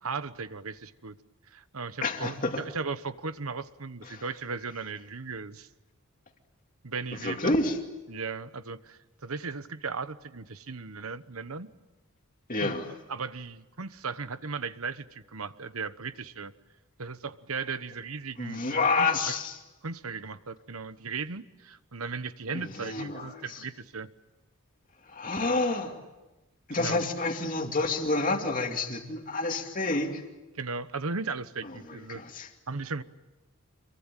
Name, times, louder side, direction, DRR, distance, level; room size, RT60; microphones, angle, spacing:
voice 1, 0.0-1.2 1.5-5.7 6.8-7.6 8.1-11.7 12.6-12.8 13.1-16.5 17.0-19.3 19.8-24.1 26.7-27.0 30.5-32.2 32.7-33.0, right 4 dB, 75° right, 13 dB, 1.2 m, -37 dB
voice 2, 2.0-2.6 4.1-4.2 7.2-7.8 12.5-12.9 18.4-19.6 22.5-23.6 25.0-26.0 26.7-30.2 32.1-32.5, left 3 dB, 40° left, 3 dB, 2.4 m, -29 dB
27.0 x 23.0 x 9.1 m, 1.1 s
head